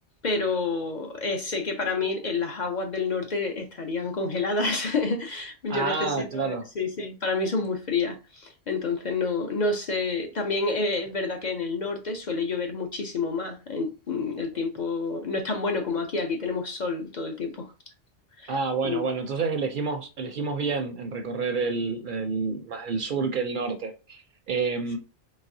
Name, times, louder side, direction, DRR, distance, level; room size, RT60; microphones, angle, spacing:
voice 1, 0.2-17.7 18.4-18.5 18.8-19.1, left 3 dB, 50° left, 0.6 m, -29 dB
voice 2, 5.7-6.7 18.5-25.0, right 4 dB, 60° right, 0.6 m, -29 dB
4.0 x 3.3 x 2.6 m
omnidirectional pair, 1.1 m